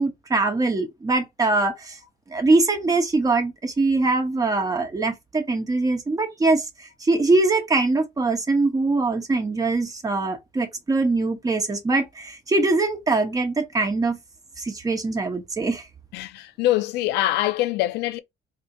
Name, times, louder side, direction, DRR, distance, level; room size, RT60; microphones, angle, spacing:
voice 1, 0.0-2.0 2.3-14.2 14.6-15.9, right 3 dB, 20° right, 1.1 m, -22 dB
voice 2, 16.1-18.2, left 15 dB, 85° left, 0.5 m, -24 dB
3.5 x 2.5 x 4.1 m
cardioid pair, 110°, 17 cm